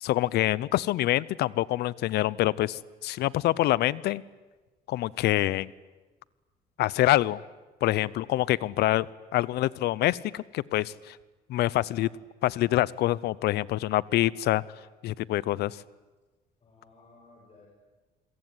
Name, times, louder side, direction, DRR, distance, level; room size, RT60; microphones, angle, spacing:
voice 1, 0.0-4.2 4.9-5.7 6.8-7.4 7.8-9.1 9.3-11.2 11.5-12.1 12.4-14.6 15.0-15.8, left 15 dB, 75° left, 21 dB, 0.8 m, -26 dB
voice 2, 7.9-8.5 16.6-17.7, left 3 dB, 35° left, -2 dB, 7.5 m, -56 dB
27.5 x 22.0 x 9.7 m, 1.2 s
cardioid pair, 110°, 17 cm